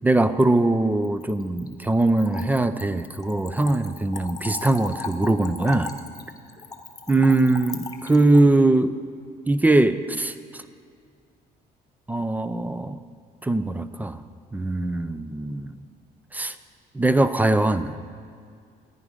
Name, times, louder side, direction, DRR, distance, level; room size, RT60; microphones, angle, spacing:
voice 1, 0.0-5.9 7.1-8.9 9.5-10.3 12.1-13.0 13.4-14.2 14.5-15.7 16.3-16.5 16.9-18.0, right 2 dB, 10° right, 12 dB, 0.5 m, -21 dB
Splash splatter / Trickle dribble, 1.0-8.4, left 4 dB, 20° left, 1.0 m, -38 dB
14.5 x 9.7 x 5.1 m, 2.2 s
cardioid pair, 110°, 17 cm